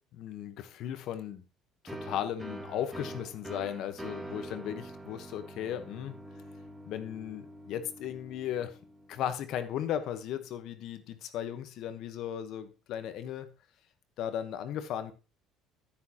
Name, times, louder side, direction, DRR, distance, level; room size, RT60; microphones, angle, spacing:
voice 1, 0.0-1.4 1.8-6.2 6.9-8.8 9.1-13.5 14.2-15.1, left 10 dB, 65° left, 10 dB, 1.1 m, -36 dB
sound 1, 1.4-1.5 2.9-9.8, left 1 dB, ahead, 2.1 m, -56 dB
sound 2, 1.9-9.3, right 2 dB, 15° right, 1.7 m, -45 dB
9.9 x 9.4 x 3.0 m, 0.30 s
supercardioid pair, 95°, 0 cm